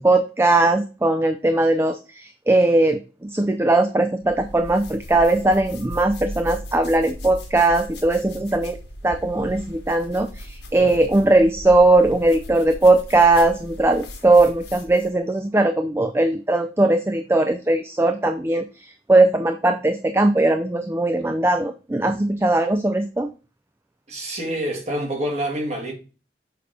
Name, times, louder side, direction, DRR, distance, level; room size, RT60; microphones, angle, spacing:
voice 1, 0.0-8.8 9.0-23.3, right 2 dB, 15° right, 0.3 m, -19 dB
sound 1, 4.2-15.2, equal, 85° left, 1.5 m, -38 dB
voice 2, 24.1-25.9, right 1 dB, 40° right, 1.8 m, -27 dB
6.7 x 3.4 x 5.0 m
head